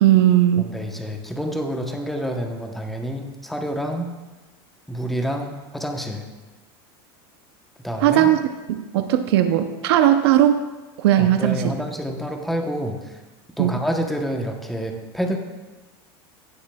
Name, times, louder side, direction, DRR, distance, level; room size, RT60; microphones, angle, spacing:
voice 1, 0.0-0.6 8.0-8.4 8.7-10.6 11.0-11.6 13.6-13.7, right 12 dB, 80° right, 8 dB, 0.6 m, -17 dB
voice 2, 0.6-4.1 4.9-6.3 7.8-8.3 11.2-13.2 13.6-15.4, equal, ahead, 3 dB, 0.9 m, -28 dB
17.5 x 7.0 x 2.3 m, 1.2 s
supercardioid pair, 150°, 13 cm